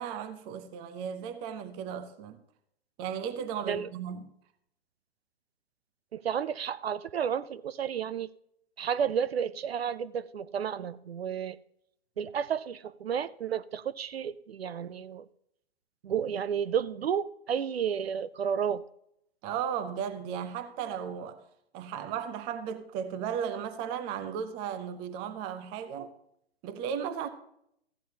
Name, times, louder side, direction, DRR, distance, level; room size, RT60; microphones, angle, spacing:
voice 1, 0.0-2.4 3.0-4.3 19.4-21.4 21.7-26.1 26.6-27.3, right 8 dB, 15° right, 0.5 m, -35 dB
voice 2, 6.1-8.3 8.8-11.6 12.2-15.3 16.0-18.8, right 8 dB, 70° right, 0.5 m, -32 dB
14.5 x 9.1 x 2.7 m
figure-of-eight pair, 120°, 31 cm